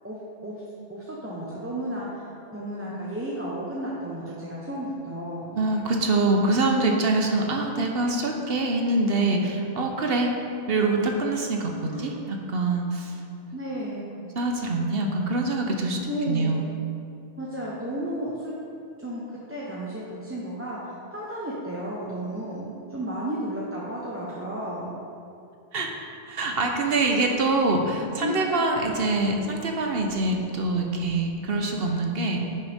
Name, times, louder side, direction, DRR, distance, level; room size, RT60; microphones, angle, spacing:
voice 1, 0.9-5.5 11.9-12.1 13.5-14.0 16.0-16.6 17.4-18.5 19.0-24.9 28.2-28.4, equal, 15° right, -7 dB, 0.9 m, -33 dB
voice 2, 5.5-10.3 10.7-13.2 14.2-16.0 16.3-16.7 25.7-25.9 26.3-32.4, right 2 dB, 65° right, 2 dB, 1.1 m, -25 dB
10.5 x 6.7 x 3.6 m, 2.6 s
omnidirectional pair, 1.1 m